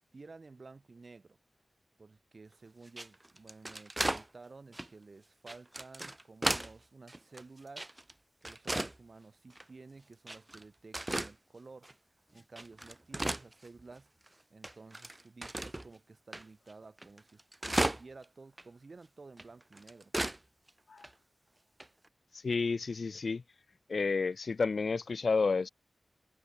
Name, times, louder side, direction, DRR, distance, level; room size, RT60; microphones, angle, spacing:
voice 1, 0.1-1.4 2.0-7.9 8.4-11.9 12.3-14.1 14.5-20.1, right 3 dB, 60° right, 3.7 m, -53 dB
sound 1, 2.9-4.3 4.7-4.9 5.5-6.7 7.1-8.1 8.4-9.0 9.5-9.6 10.3-10.6 10.9-11.3 11.8-11.9 12.4-14.0 14.3-14.4 14.6-15.9 16.3-16.4 16.7-16.8 17.0-18.3 18.6-18.7 19.4-20.4 20.7-20.8 21.0-21.1 21.8-22.1, right 1 dB, 25° right, 1.0 m, -35 dB
voice 2, 22.3-23.4 23.9-25.7, left 4 dB, 70° left, 0.8 m, -31 dB
cardioid pair, 55°, 0 cm